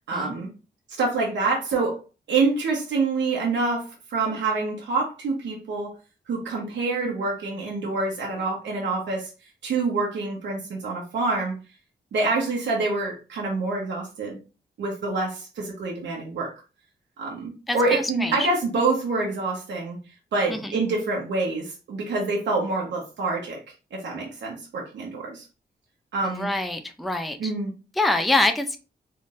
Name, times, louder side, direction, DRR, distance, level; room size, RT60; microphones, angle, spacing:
voice 1, 0.1-0.5 1.0-2.0 2.3-5.9 6.3-9.3 9.6-11.6 12.1-14.4 14.8-16.5 17.2-20.0 20.3-23.6 23.9-25.4 26.1-26.5 27.4-27.7, right 3 dB, 85° right, -2 dB, 1.1 m, -26 dB
voice 2, 17.7-18.5 20.5-20.8 26.2-27.5 28.0-28.8, left 2 dB, ahead, 5 dB, 0.5 m, -25 dB
3.9 x 3.3 x 2.6 m, 0.32 s
cardioid pair, 80°, 18 cm